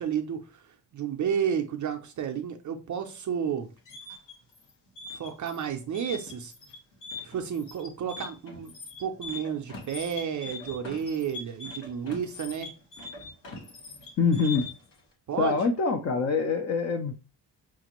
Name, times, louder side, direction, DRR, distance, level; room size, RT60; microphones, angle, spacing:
voice 1, 0.0-3.7 5.1-6.5 7.2-8.7 9.0-12.7 15.3-15.7, right 8 dB, 45° right, 0.4 m, -31 dB
sound 1, 3.6-14.9, left 3 dB, 70° left, 1.6 m, -42 dB
voice 2, 14.2-14.6 15.4-17.1, left 4 dB, 40° left, 0.4 m, -25 dB
5.8 x 2.5 x 2.9 m
wide cardioid pair, 175°, 44 cm